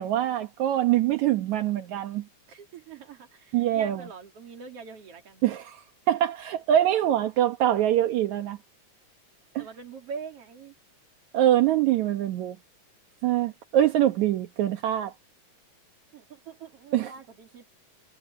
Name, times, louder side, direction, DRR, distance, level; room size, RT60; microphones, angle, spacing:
voice 1, 0.0-2.2 3.5-4.1 5.4-5.8 6.1-8.6 9.6-9.7 11.3-12.6 13.2-15.1 16.9-17.1, right 12 dB, 75° right, 2.6 m, -24 dB
voice 2, 2.5-5.4 9.6-10.7 16.1-17.6, right 6 dB, 55° right, 3.7 m, -43 dB
omnidirectional pair, 3.4 m